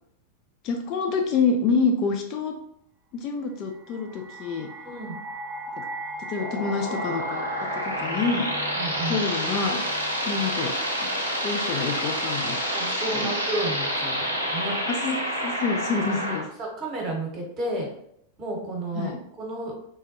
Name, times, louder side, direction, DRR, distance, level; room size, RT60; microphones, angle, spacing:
voice 1, 0.6-2.5 3.1-4.7 5.8-5.9 6.3-7.4 7.7-8.5 9.1-9.8 10.3-10.7 11.0-11.2 11.4-12.6 13.2-13.3 14.9-16.5 19.0-19.2, left 4 dB, 40° left, 4 dB, 0.3 m, -27 dB
sound 1, 3.6-10.7, equal, 5° left, 0.7 m, -38 dB
voice 2, 4.8-5.2 8.7-9.2 12.7-14.8 16.6-17.9 18.4-19.8, right 1 dB, 30° right, 0 dB, 1.0 m, -32 dB
sound 2, 6.4-16.4, equal, 85° right, 0.6 m, -28 dB
3.3 x 2.2 x 2.8 m, 0.72 s
figure-of-eight pair, 90°, 0 cm